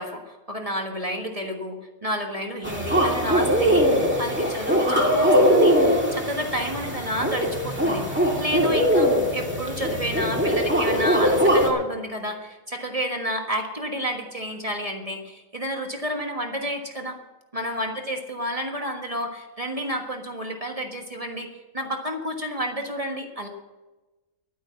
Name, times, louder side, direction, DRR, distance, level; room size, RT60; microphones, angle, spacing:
voice 1, 0.0-8.1 8.4-17.2 17.5-23.5, equal, 25° right, 2 dB, 1.5 m, -30 dB
sound 1, 2.6-11.7, equal, 10° right, 2.1 m, -21 dB
12.0 x 9.7 x 7.2 m, 1.1 s
omnidirectional pair, 1.5 m